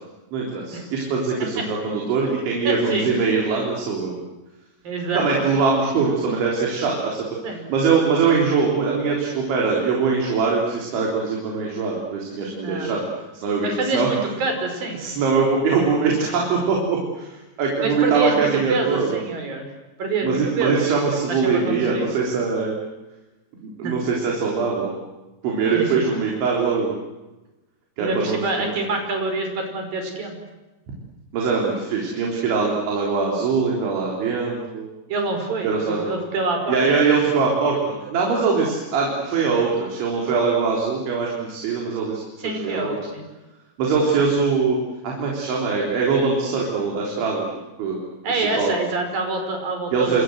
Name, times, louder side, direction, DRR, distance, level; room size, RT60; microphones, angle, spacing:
voice 1, 0.3-4.2 5.2-7.3 7.7-13.0 13.4-14.1 15.0-19.2 20.2-22.8 23.6-24.9 25.4-26.9 28.0-28.7 31.3-34.9 35.6-36.1 36.7-43.0 43.8-44.8 45.0-47.5 47.8-48.0 48.3-48.7 49.9-50.2, right 4 dB, 80° right, -2 dB, 6.1 m, -22 dB
voice 2, 2.6-3.1 4.8-5.2 7.4-7.6 12.6-12.9 13.6-15.0 17.8-19.7 20.0-21.0 21.3-22.1 23.8-23.9 25.7-26.1 28.0-30.4 35.1-36.8 42.4-43.2 48.2-50.2, right 3 dB, 50° right, 4 dB, 6.9 m, -26 dB
28.0 x 26.5 x 7.9 m, 1.1 s
omnidirectional pair, 5.3 m